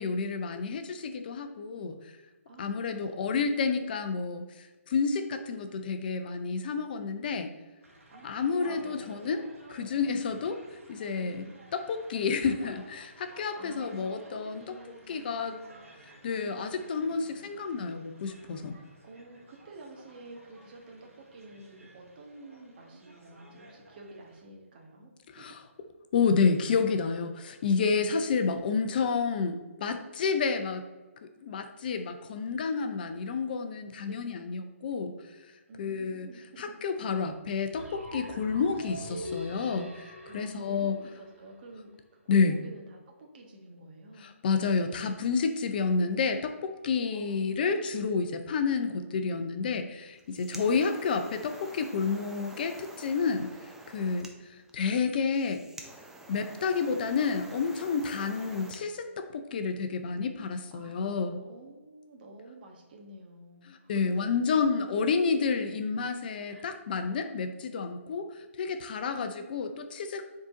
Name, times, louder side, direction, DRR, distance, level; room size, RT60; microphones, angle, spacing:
voice 1, 0.0-2.1 2.6-7.5 8.2-10.6 10.9-11.4 11.7-14.8 15.1-15.5 16.2-18.8 25.3-25.6 26.1-30.9 31.2-35.1 35.8-36.3 36.6-41.0 42.3-42.5 44.2-55.6 56.3-61.4 63.7-70.2, left 5 dB, 40° left, 8 dB, 0.5 m, -30 dB
voice 2, 2.5-3.5 8.1-9.3 11.2-11.5 13.6-15.8 16.3-17.5 19.0-25.5 34.0-34.5 35.7-36.6 40.2-44.3 47.1-47.9 60.7-64.2 66.5-66.8 69.1-69.9, right 2 dB, 40° right, 1 dB, 1.4 m, -50 dB
sound 1, 7.8-24.4, right 1 dB, 85° right, 1.7 m, -54 dB
sound 2, 37.8-41.7, left 1 dB, 65° right, 1.3 m, -43 dB
sound 3, 50.0-58.8, right 2 dB, 5° right, 0.5 m, -48 dB
7.0 x 3.8 x 3.9 m, 1.2 s
figure-of-eight pair, 135°, 7 cm